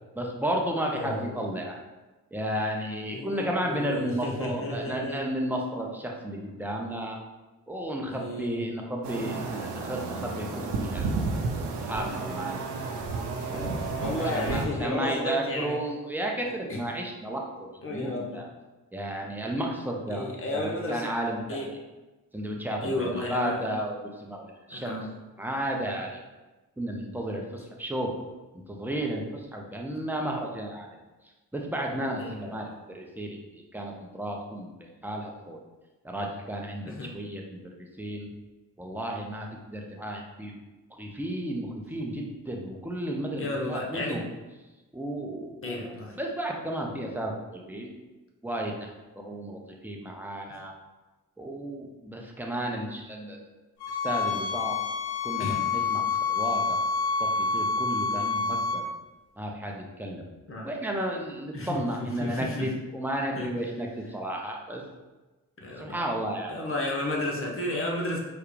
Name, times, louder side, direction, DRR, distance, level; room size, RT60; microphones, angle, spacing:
voice 1, 0.2-1.8 2.3-7.2 7.7-11.1 11.8-12.6 13.5-17.4 17.9-18.5 18.9-20.2 20.5-21.6 22.3-25.1 25.4-26.2 26.8-28.1 28.5-31.0 31.5-34.7 35.0-35.6 36.0-38.3 38.8-40.5 41.0-44.2 44.9-47.9 48.4-48.9 49.2-50.7 51.4-53.4 54.0-54.8 55.2-56.8 57.2-58.8 59.4-60.2 60.6-64.8 65.8-66.5, right 1 dB, 5° right, 0 dB, 0.8 m, -33 dB
voice 2, 0.9-1.5 3.1-5.2 8.0-8.7 13.4-15.8 16.7-16.8 17.8-18.4 20.1-21.1 21.5-21.7 22.8-23.6 24.7-25.1 32.2-32.8 36.8-37.1 43.3-44.2 45.6-46.2 55.4-55.6 60.5-60.7 61.5-62.7 63.4-63.5 65.6-66.0 66.5-68.2, left 2 dB, 30° left, -1 dB, 1.0 m, -33 dB
sound 1, 9.0-14.7, right 3 dB, 80° right, 0.6 m, -32 dB
sound 2, 53.8-58.8, left 4 dB, 70° left, 0.8 m, -28 dB
4.5 x 2.3 x 3.3 m, 1.1 s
supercardioid pair, 40°, 40 cm